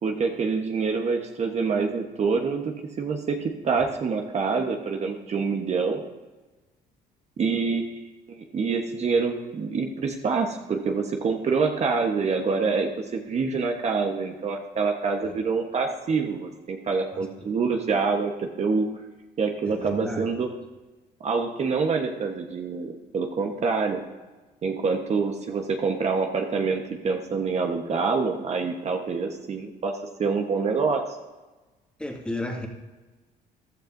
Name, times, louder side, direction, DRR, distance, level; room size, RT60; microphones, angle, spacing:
voice 1, 0.0-6.0 7.4-7.8 8.3-18.9 19.4-20.5 21.2-24.0 24.6-29.9 30.2-31.1, right 4 dB, 40° right, 3 dB, 1.1 m, -26 dB
voice 2, 19.6-20.3 32.0-32.7, left 1 dB, 5° left, 1 dB, 2.0 m, -33 dB
15.0 x 11.5 x 2.6 m, 1.2 s
cardioid pair, 110°, 17 cm